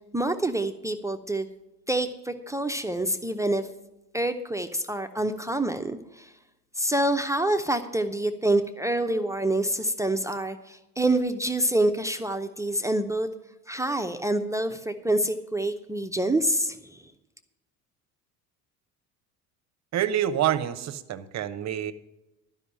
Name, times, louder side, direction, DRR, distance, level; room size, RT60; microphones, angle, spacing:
voice 1, 0.1-1.5 1.9-3.7 4.1-6.3 6.8-13.3 13.7-17.0, right 1 dB, 5° right, 8 dB, 0.6 m, -27 dB
voice 2, 19.9-21.9, right 11 dB, 35° right, 13 dB, 0.9 m, -27 dB
12.5 x 5.5 x 8.7 m, 0.95 s
figure-of-eight pair, 60°, 46 cm